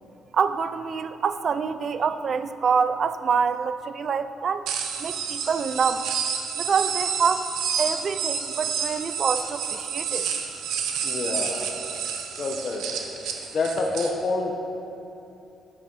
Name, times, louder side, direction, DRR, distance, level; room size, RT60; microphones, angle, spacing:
voice 1, 0.3-4.7 5.0-6.1 6.6-7.5 7.8-10.3, right 6 dB, 50° right, 12 dB, 0.5 m, -26 dB
sound 1, 4.7-14.1, right 7 dB, 85° right, 1.0 m, -29 dB
voice 2, 11.0-11.6 12.4-12.8 13.5-14.5, left 3 dB, 50° left, 1 dB, 1.2 m, -27 dB
11.0 x 8.9 x 5.7 m, 3.0 s
cardioid pair, 90°, 0 cm